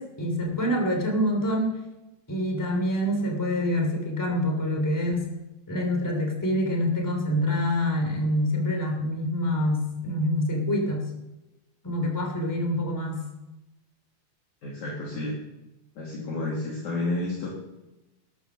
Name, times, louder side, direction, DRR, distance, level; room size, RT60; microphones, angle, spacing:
voice 1, 0.0-1.8 2.3-5.2 5.7-11.1 11.8-13.2, left 1 dB, 5° left, 1 dB, 2.3 m, -26 dB
voice 2, 14.6-15.3 16.0-17.5, left 2 dB, 50° left, -4 dB, 3.6 m, -30 dB
13.0 x 10.5 x 6.2 m, 0.99 s
omnidirectional pair, 4.6 m